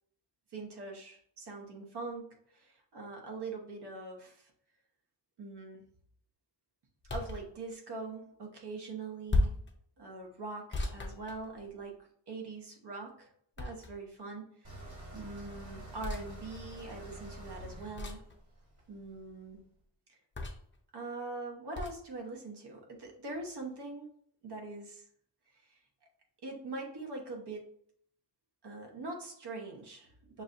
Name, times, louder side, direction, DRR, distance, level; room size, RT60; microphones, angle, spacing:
voice 1, 0.5-4.5 5.4-5.8 7.1-9.5 10.0-11.9 12.3-13.3 13.6-14.8 15.1-18.2 18.9-19.6 20.1-20.2 20.9-24.1 24.4-25.0 25.6-25.8 26.4-27.7 28.6-30.4, right 3 dB, 60° right, 1 dB, 1.1 m, -43 dB
sound 1, 7.0-7.5 9.3-9.7 10.7-11.9 13.6-14.2 16.0-16.3 18.0-18.3 20.3-20.8 21.7-22.0, left 2 dB, 25° left, 0.6 m, -34 dB
sound 2, 14.6-19.6, right 1 dB, 40° right, 1.7 m, -48 dB
6.2 x 2.5 x 2.6 m, 0.64 s
wide cardioid pair, 120°, 44 cm